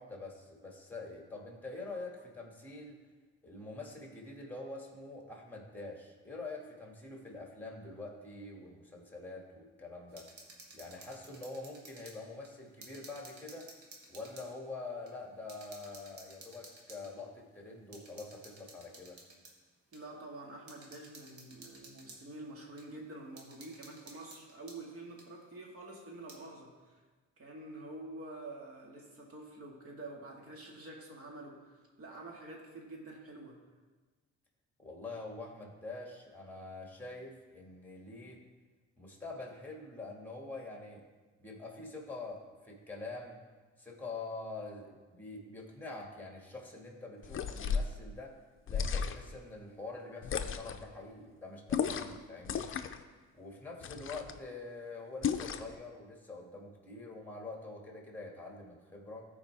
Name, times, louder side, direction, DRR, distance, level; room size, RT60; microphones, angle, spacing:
voice 1, 0.0-3.0 3.4-10.3 10.7-13.7 14.1-19.2 34.8-38.4 39.0-41.0 41.4-43.4 43.8-48.4 48.7-52.7 53.3-59.3, left 3 dB, 5° left, -1 dB, 2.1 m, -45 dB
sound 1, 10.1-12.2 12.4-14.5 15.1-15.2 15.5-17.1 17.9-19.5 19.9-20.0 20.7-22.2 22.8-22.9 23.4-24.8 25.2-25.3 26.1-26.4, right 2 dB, 70° right, 1.8 m, -54 dB
voice 2, 19.9-27.0 27.4-33.6, right 2 dB, 50° right, 0 dB, 2.0 m, -48 dB
sound 2, 47.2-47.9 48.7-49.4 50.2-50.8 51.7-52.2 52.4-53.0 53.8-54.4 55.2-55.7, left 7 dB, 45° left, 0.5 m, -34 dB
14.5 x 4.8 x 3.5 m, 1.3 s
cardioid pair, 90°, 30 cm